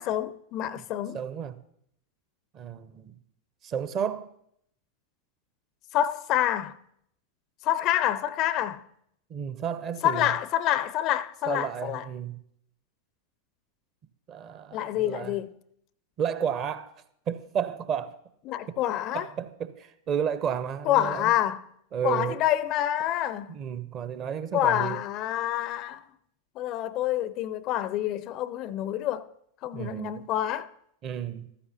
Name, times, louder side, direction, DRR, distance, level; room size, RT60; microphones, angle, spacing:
voice 1, 0.0-1.2 5.9-6.8 7.6-8.8 10.0-12.0 14.7-15.5 18.5-19.3 20.9-21.6 22.0-23.5 24.5-26.0 26.6-29.3 29.6-30.7, left 12 dB, 35° left, 0.4 m, -27 dB
voice 2, 1.1-1.6 2.5-3.2 3.6-4.3 9.3-10.3 11.5-12.4 14.3-15.4 16.2-16.9 17.3-18.2 18.7-18.8 19.1-21.3 21.9-22.4 23.5-25.0 29.7-30.3 31.0-31.5, right 8 dB, 35° right, 0.7 m, -32 dB
14.0 x 13.5 x 2.8 m
figure-of-eight pair, 90°, 0 cm